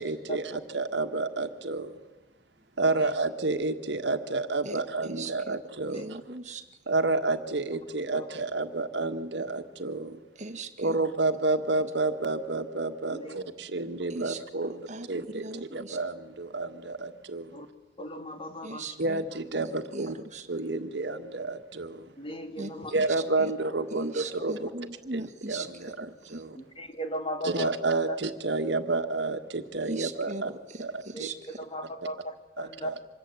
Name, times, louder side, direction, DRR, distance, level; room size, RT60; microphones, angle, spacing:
voice 1, 0.0-1.9 2.8-6.2 6.9-10.2 10.8-14.8 15.1-17.5 19.0-20.1 20.5-22.1 22.9-24.7 25.1-26.6 27.4-30.5 30.8-31.3 32.6-32.9, right 3 dB, 60° right, 7 dB, 1.6 m, -30 dB
voice 2, 4.6-5.6 5.9-6.6 10.4-11.0 14.1-16.0 18.6-19.2 19.6-20.5 22.6-22.7 23.4-23.5 23.9-25.7 26.2-26.4 29.9-31.4, right 3 dB, 40° right, 9 dB, 1.6 m, -39 dB
voice 3, 18.0-19.0 22.2-22.9 26.5-27.7 28.1-28.2 31.1-32.9, equal, 30° left, 6 dB, 2.5 m, -37 dB
26.0 x 21.5 x 9.6 m, 1.1 s
head